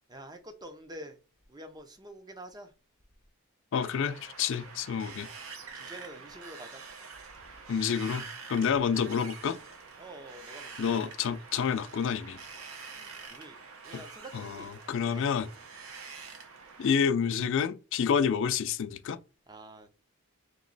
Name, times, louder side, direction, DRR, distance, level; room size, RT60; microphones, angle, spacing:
voice 1, 0.1-1.2 1.5-2.7 5.7-6.8 10.0-11.1 13.0-13.6 13.8-14.7 15.0-15.2 19.5-19.9, right 1 dB, 20° right, 0.5 m, -47 dB
voice 2, 3.7-5.3 7.7-9.6 10.8-12.4 14.3-15.5 16.8-19.2, left 7 dB, 60° left, 0.4 m, -29 dB
Wind, 3.7-16.9, right 5 dB, 70° right, 0.8 m, -46 dB
3.0 x 3.0 x 3.9 m
head